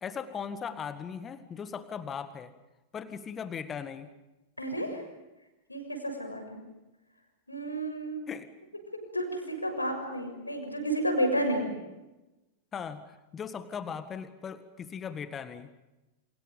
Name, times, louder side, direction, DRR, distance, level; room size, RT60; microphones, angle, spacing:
voice 1, 0.0-2.5 2.9-4.1 8.3-8.5 12.7-15.7, left 7 dB, 25° left, 11 dB, 1.8 m, -38 dB
voice 2, 4.6-5.0 5.7-6.6 7.5-8.3 8.9-11.7, right 1 dB, 85° left, 4 dB, 6.6 m, -31 dB
30.0 x 28.0 x 5.3 m, 1.0 s
figure-of-eight pair, 90°, 0 cm